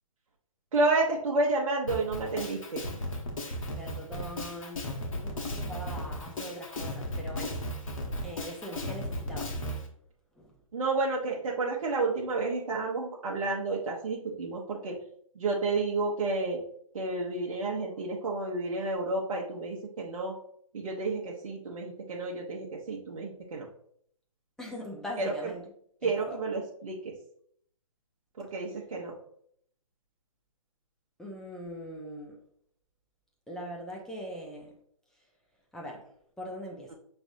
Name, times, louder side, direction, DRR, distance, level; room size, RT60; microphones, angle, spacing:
voice 1, 0.7-2.9 10.7-15.0 15.3-16.6 16.9-20.3 20.7-23.7 25.2-25.5 26.0-27.1 28.4-29.2, right 3 dB, 65° right, -3 dB, 1.0 m, -30 dB
Drum kit, 1.9-9.8, left 1 dB, 65° left, 1.3 m, -35 dB
voice 2, 3.8-4.8 5.1-7.6 8.2-9.5 10.4-10.5 24.6-25.6 26.0-26.4 31.2-32.4 33.5-34.7 35.7-36.1 36.4-36.9, equal, 5° left, -3 dB, 0.6 m, -41 dB
5.9 x 3.3 x 2.7 m, 0.65 s
figure-of-eight pair, 135°, 18 cm